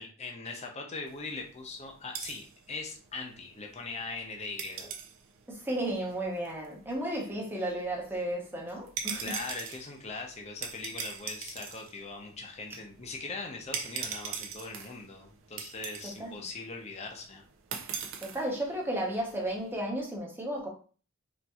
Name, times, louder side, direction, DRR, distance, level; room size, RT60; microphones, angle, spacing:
voice 1, 0.0-4.9 9.2-17.4, left 3 dB, 30° left, 0.5 m, -40 dB
sound 1, 1.1-19.8, right 7 dB, 75° right, 0.5 m, -43 dB
voice 2, 5.5-9.3 16.2-16.4 18.2-20.7, right 1 dB, 10° right, 0.8 m, -33 dB
4.1 x 2.6 x 2.3 m
head